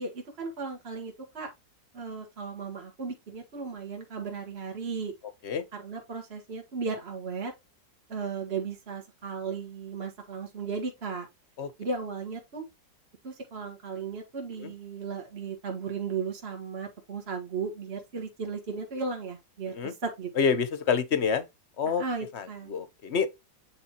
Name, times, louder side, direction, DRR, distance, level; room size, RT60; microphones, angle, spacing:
voice 1, 0.0-1.5 1.9-5.1 5.7-7.5 8.1-11.3 11.8-12.6 13.2-20.3 22.0-22.7, right 5 dB, 35° right, 1.7 m, -35 dB
voice 2, 20.4-21.4 21.8-22.0 22.3-23.3, left 6 dB, 50° left, 0.9 m, -27 dB
8.8 x 4.3 x 2.9 m
omnidirectional pair, 1.9 m